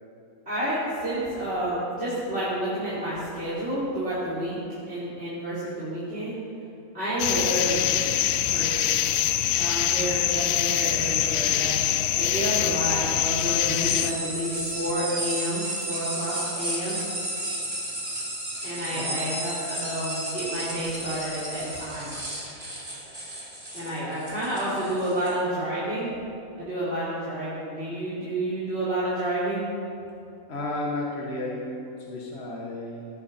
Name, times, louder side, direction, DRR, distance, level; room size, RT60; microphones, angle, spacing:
voice 1, 0.5-4.6 4.9-6.4 6.9-8.1 8.4-9.0 9.6-11.8 12.1-17.0 18.6-22.1 23.7-26.1 26.6-29.7, right 1 dB, 45° right, -11 dB, 4.9 m, -30 dB
sound 1, 7.2-14.1, left 11 dB, 75° left, 1.0 m, -24 dB
sound 2, 13.4-25.3, right 1 dB, 25° right, 2.7 m, -33 dB
voice 2, 18.9-19.3 30.5-33.1, left 2 dB, 45° left, -2 dB, 1.9 m, -33 dB
18.5 x 17.5 x 4.4 m, 2.7 s
omnidirectional pair, 1.5 m